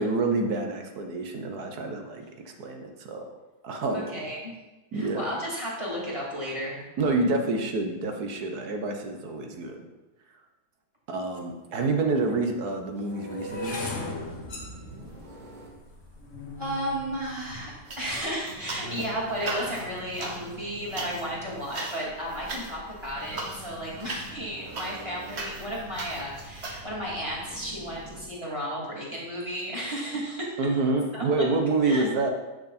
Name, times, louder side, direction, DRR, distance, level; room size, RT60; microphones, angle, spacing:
voice 1, 0.0-2.2 2.6-3.3 3.6-4.1 4.9-5.2 7.0-9.9 11.1-13.8 18.8-19.0 30.6-32.3, right 3 dB, 65° right, 4 dB, 1.6 m, -27 dB
voice 2, 3.9-4.5 4.9-6.8 16.6-17.7 18.0-30.5 31.1-31.2 31.8-32.0, equal, 15° right, -6 dB, 3.0 m, -33 dB
sound 1, 11.4-11.5 12.2-18.4 19.0-19.4 19.7-20.0, left 2 dB, 45° left, 1.7 m, -39 dB
sound 2, 13.5-28.2, right 1 dB, 90° right, 2.9 m, -46 dB
sound 3, 17.9-19.1 19.3-26.8, right 2 dB, 45° right, 1.5 m, -38 dB
11.0 x 6.5 x 4.3 m, 1.1 s
omnidirectional pair, 1.8 m